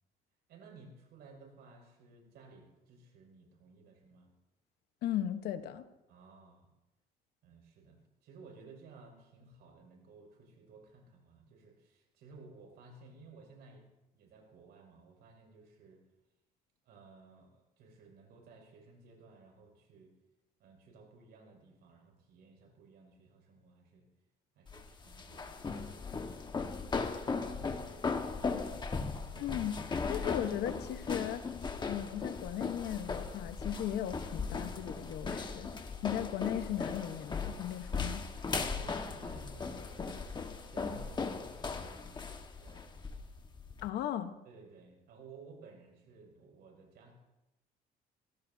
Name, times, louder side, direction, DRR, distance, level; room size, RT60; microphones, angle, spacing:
voice 1, 0.5-4.3 6.1-6.7 7.4-13.9 14.1-16.0 16.8-20.1 20.6-24.1 24.5-26.5 27.1-29.3 38.5-40.1 40.7-42.3 42.6-43.0 44.4-47.1, right 3 dB, 75° right, 0 dB, 6.3 m, -56 dB
voice 2, 5.0-5.8 29.4-31.4 31.9-35.7 36.0-38.3 43.8-44.4, left 11 dB, 75° left, 9 dB, 1.1 m, -37 dB
sound 1, 24.7-43.9, left 4 dB, 25° left, 1.4 m, -38 dB
25.0 x 17.5 x 2.8 m, 0.98 s
cardioid pair, 110°, 17 cm